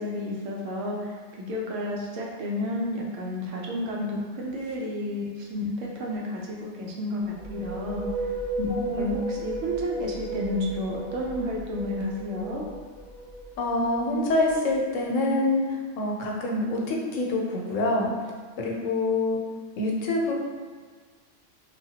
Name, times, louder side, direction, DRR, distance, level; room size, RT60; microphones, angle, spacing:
voice 1, 0.0-8.1 8.6-8.7 9.0-12.6, left 1 dB, 80° right, -3 dB, 1.0 m, -31 dB
sound 1, 7.2-14.8, right 3 dB, 40° left, 0.7 m, -35 dB
voice 2, 8.7-9.1 13.6-15.6 16.0-18.1 18.6-19.4 19.8-20.3, left 2 dB, 85° left, -1 dB, 1.0 m, -26 dB
3.3 x 2.2 x 2.7 m, 1.5 s
omnidirectional pair, 1.3 m